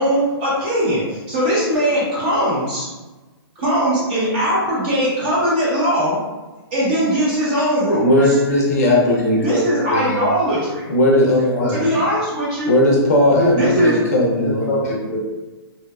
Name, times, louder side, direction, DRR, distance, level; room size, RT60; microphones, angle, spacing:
voice 1, 0.0-2.9 3.6-6.2 6.7-8.3 9.4-10.8 11.7-12.7 13.6-14.0, equal, 20° right, -7 dB, 0.7 m, -20 dB
voice 2, 8.0-9.6 9.9-10.2 10.9-11.9 12.7-14.8, left 1 dB, 35° left, -3 dB, 0.6 m, -17 dB
voice 3, 13.3-13.9 14.4-15.2, equal, 5° left, -14 dB, 0.9 m, -22 dB
2.7 x 2.1 x 2.3 m, 1.2 s
hypercardioid pair, 175°, 14 cm